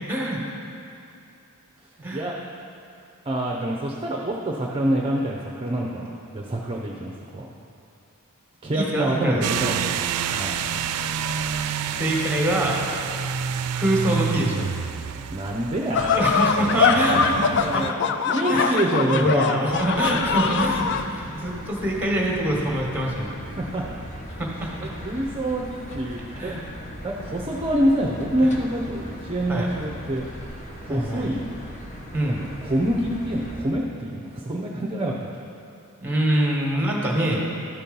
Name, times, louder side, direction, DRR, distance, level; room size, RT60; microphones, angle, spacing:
voice 1, 0.1-0.4 2.0-2.3 8.7-9.5 10.7-10.8 12.0-12.8 13.7-14.7 16.1-17.9 18.5-23.3 24.4-24.9 26.3-26.6 28.4-28.5 29.5-29.7 30.9-31.3 32.1-32.4 36.0-37.4, right 1 dB, 10° right, -2 dB, 1.4 m, -25 dB
voice 2, 3.3-7.4 8.6-9.8 10.3-10.6 15.1-16.2 17.6-17.9 18.3-19.7 23.4-23.9 24.8-26.6 27.0-30.3 30.8-31.5 32.6-35.2, right 1 dB, 25° right, -2 dB, 0.6 m, -26 dB
sound 1, 9.4-17.9, right 7 dB, 85° right, 0.4 m, -29 dB
sound 2, 15.9-21.0, left 6 dB, 50° left, 0.4 m, -23 dB
sound 3, 19.7-33.6, equal, 35° left, 0.9 m, -39 dB
12.5 x 4.4 x 5.3 m, 2.6 s
head